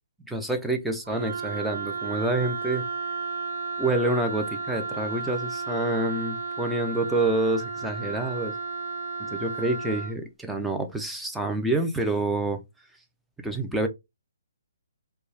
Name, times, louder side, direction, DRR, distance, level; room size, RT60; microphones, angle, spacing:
voice 1, 0.3-2.8 3.8-8.6 9.2-12.6 13.4-13.9, right 2 dB, 5° right, 0.4 m, -27 dB
Wind instrument woodwind instrument, 1.0-10.1, right 4 dB, 55° right, 0.5 m, -33 dB
2.3 x 2.2 x 3.1 m
hypercardioid pair, 155°, 0 cm